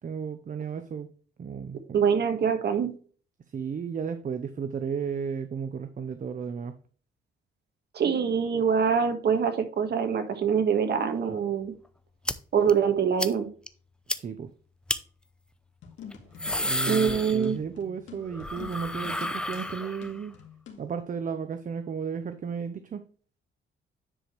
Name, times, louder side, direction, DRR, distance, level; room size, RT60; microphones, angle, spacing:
voice 1, 0.0-1.1 1.4-2.0 3.5-6.8 14.2-14.5 16.6-20.4 20.8-23.0, right 6 dB, 40° right, 10 dB, 0.8 m, -34 dB
voice 2, 1.9-2.9 7.9-11.7 12.5-13.5 16.9-17.6, right 7 dB, 55° right, 7 dB, 1.6 m, -24 dB
sound 1, 12.3-12.4 12.7-12.8 13.2-13.3 13.7-13.8 14.1-14.2 14.9-15.0 16.1-17.8 18.1-20.2, left 1 dB, 5° left, 0.6 m, -31 dB
sound 2, 15.8-20.9, left 7 dB, 70° left, 2.1 m, -47 dB
9.9 x 5.0 x 3.2 m, 0.41 s
cardioid pair, 90°, 20 cm